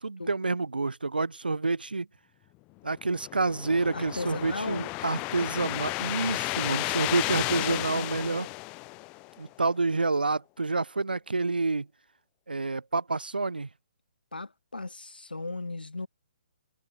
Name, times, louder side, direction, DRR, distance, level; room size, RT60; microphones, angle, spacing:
voice 1, 0.0-2.1 2.8-8.5 9.4-11.9 12.5-13.7, right 3 dB, 80° right, 0.7 m, -28 dB
sound 1, 2.9-9.5, left 27 dB, 20° left, 0.4 m, -33 dB
voice 2, 3.9-4.9 7.5-8.3 14.3-16.1, left 2 dB, 80° left, 1.5 m, -36 dB
figure-of-eight pair, 130°, 5 cm